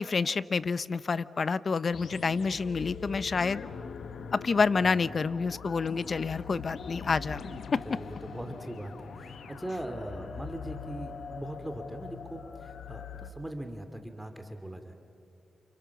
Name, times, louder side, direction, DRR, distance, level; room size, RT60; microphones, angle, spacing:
voice 1, 0.0-3.7 4.3-7.4 7.7-7.8, left 4 dB, 50° left, 17 dB, 0.7 m, -28 dB
sound 1, 1.9-13.3, left 6 dB, 75° left, 1.2 m, -42 dB
voice 2, 7.8-14.9, right 1 dB, 5° right, 6 dB, 2.4 m, -40 dB
29.5 x 28.5 x 7.1 m, 2.5 s
cardioid pair, 75°, 0 cm